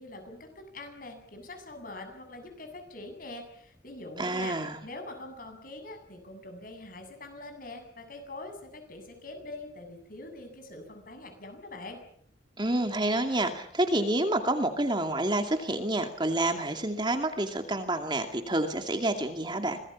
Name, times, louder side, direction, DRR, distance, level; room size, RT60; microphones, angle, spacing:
voice 1, 0.0-4.6 4.8-12.0, left 2 dB, 50° left, 6 dB, 7.9 m, -44 dB
voice 2, 4.2-4.8 12.6-19.8, right 1 dB, 25° right, 5 dB, 2.5 m, -28 dB
26.5 x 19.5 x 7.2 m, 0.63 s
head